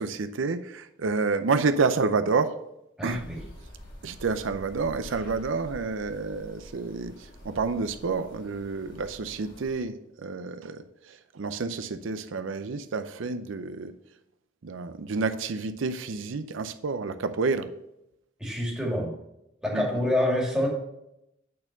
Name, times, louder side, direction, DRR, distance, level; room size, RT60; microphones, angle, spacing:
voice 1, 0.0-2.6 3.0-3.2 4.0-10.0 10.2-13.9 14.6-17.7 19.7-20.0, right 4 dB, 85° right, 10 dB, 0.5 m, -29 dB
voice 2, 3.0-3.4 18.4-19.1 19.6-20.7, left 1 dB, 5° right, -3 dB, 2.1 m, -26 dB
sound 1, 3.1-9.7, equal, 45° left, 2.3 m, -47 dB
8.5 x 4.4 x 6.6 m, 0.85 s
head